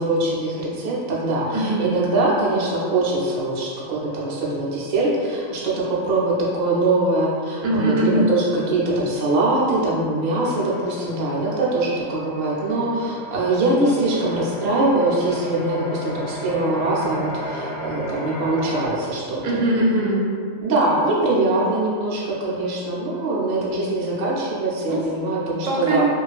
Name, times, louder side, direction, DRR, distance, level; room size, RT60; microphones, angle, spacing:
voice 1, 0.0-19.4 20.6-26.0, right 2 dB, 60° right, -6 dB, 0.4 m, -22 dB
voice 2, 1.5-1.9 7.6-8.3 19.4-20.3 24.9-25.0 25.7-26.0, right 1 dB, 90° right, -3 dB, 1.0 m, -21 dB
sound 1, 10.4-18.9, equal, 50° left, 0.9 m, -34 dB
2.5 x 2.3 x 2.3 m, 2.3 s
omnidirectional pair, 1.4 m